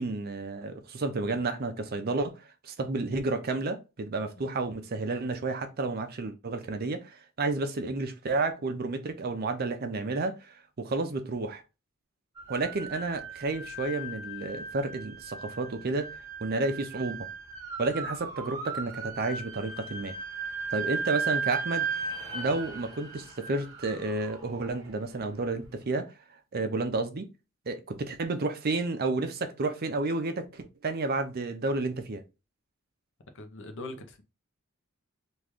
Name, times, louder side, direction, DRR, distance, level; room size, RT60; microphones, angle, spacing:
voice 1, 0.0-11.6 12.5-17.3 17.8-20.1 20.7-21.9 22.3-26.1 26.5-27.3 27.7-32.2, right 3 dB, 45° right, 0.6 m, -31 dB
sound 1, 12.4-25.4, right 5 dB, 15° right, 1.2 m, -37 dB
voice 2, 33.3-34.2, left 2 dB, 60° left, 0.7 m, -41 dB
3.1 x 2.5 x 3.6 m
head